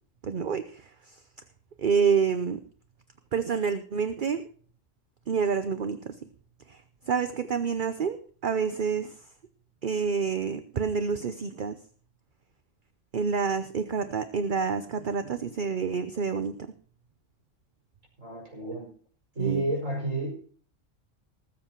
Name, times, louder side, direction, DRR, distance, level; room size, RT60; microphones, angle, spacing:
voice 1, 0.2-1.2 1.8-2.6 3.3-4.4 5.3-6.2 6.7-9.2 9.8-11.8 13.1-16.7 19.4-19.6, right 6 dB, 45° right, 10 dB, 0.9 m, -28 dB
voice 2, 18.2-18.9 19.3-20.3, right 2 dB, 90° right, 1 dB, 5.7 m, -31 dB
19.5 x 7.6 x 4.5 m, 0.44 s
omnidirectional pair, 1.3 m